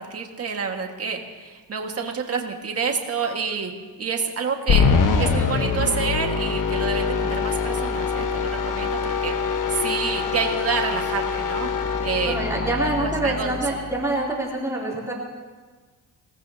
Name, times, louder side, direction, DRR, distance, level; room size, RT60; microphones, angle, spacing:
voice 1, 0.0-3.7 4.0-4.9 5.2-11.7 12.0-12.4 13.0-13.6, right 5 dB, 35° right, 3 dB, 1.8 m, -28 dB
sound 1, 4.7-14.1, left 5 dB, 50° left, 1.3 m, -24 dB
voice 2, 12.3-15.1, right 1 dB, 5° right, -5 dB, 3.2 m, -25 dB
27.0 x 18.5 x 2.8 m, 1.4 s
cardioid pair, 160°, 41 cm